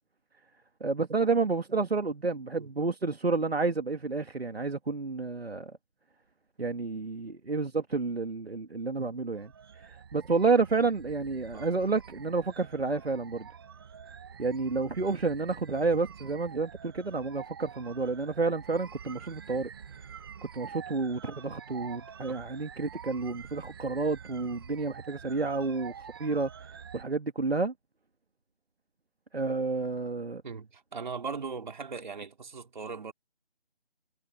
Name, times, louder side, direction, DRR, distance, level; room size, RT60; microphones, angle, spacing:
voice 1, 0.8-5.7 6.6-13.5 14.4-19.7 20.5-25.9 26.2-26.5 26.9-27.7 29.3-30.4, right 4 dB, 80° right, 2.7 m, -30 dB
sound 1, 9.3-27.0, right 7 dB, 25° right, 1.2 m, -47 dB
voice 2, 30.4-33.1, right 5 dB, 50° right, 4.1 m, -39 dB
figure-of-eight pair, 160°, 30 cm